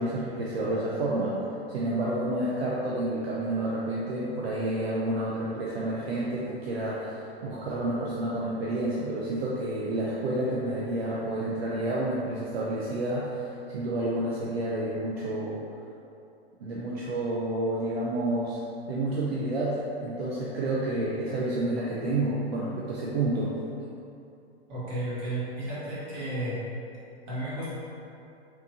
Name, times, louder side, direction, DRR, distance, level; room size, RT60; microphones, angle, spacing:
voice 1, 0.0-1.3 1.7-15.6 16.6-18.6 18.9-23.5, right 1 dB, 75° right, -6 dB, 0.6 m, -29 dB
voice 2, 24.7-26.6 27.3-27.7, right 1 dB, 50° right, -8 dB, 1.4 m, -33 dB
3.2 x 3.0 x 2.7 m, 2.7 s
figure-of-eight pair, 100°, 32 cm